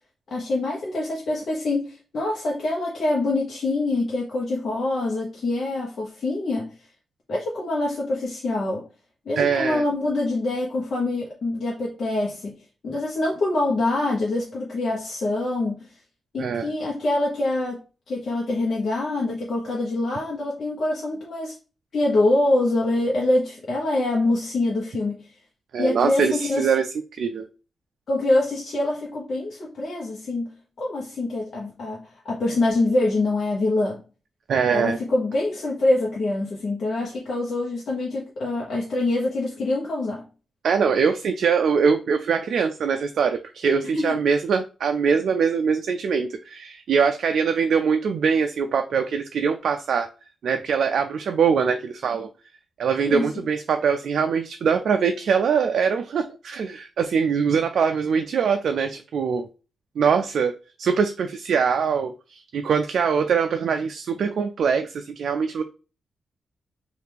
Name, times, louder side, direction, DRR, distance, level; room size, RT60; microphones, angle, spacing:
voice 1, 0.3-6.7 7.3-8.9 9.3-12.6 12.8-15.9 16.3-17.8 18.1-21.5 21.9-25.3 25.8-26.7 28.1-30.5 30.8-34.0 34.7-40.2 43.9-44.1 53.0-53.2, left 2 dB, 65° left, 0.8 m, -25 dB
voice 2, 9.4-9.8 16.4-16.7 25.7-26.9 27.2-27.5 34.5-35.0 40.6-50.1 50.4-52.3 52.8-59.5 60.0-65.6, right 6 dB, 75° right, 0.3 m, -23 dB
2.8 x 2.4 x 3.4 m
cardioid pair, 75°, 0 cm